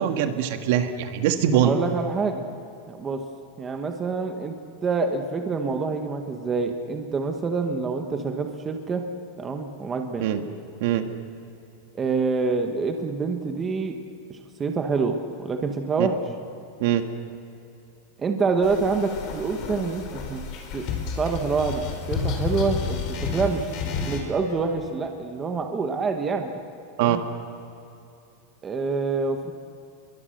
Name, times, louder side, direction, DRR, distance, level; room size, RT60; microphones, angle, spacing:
voice 1, 0.0-1.7 10.2-10.4 10.8-11.1 16.0-16.1 16.8-17.0 27.0-27.2, right 11 dB, 55° right, 6 dB, 1.8 m, -22 dB
voice 2, 1.5-2.4 2.9-3.2 3.6-4.5 4.8-9.0 9.4-10.3 11.9-14.0 14.3-16.2 18.2-20.4 20.7-20.9 21.2-21.8 22.1-23.7 24.0-26.6 27.0-27.2 28.6-29.5, right 4 dB, 15° right, 4 dB, 1.2 m, -26 dB
sound 1, 18.6-24.2, left 6 dB, 40° left, 4.3 m, -31 dB
29.5 x 23.0 x 6.6 m, 2.7 s
supercardioid pair, 165°, 0 cm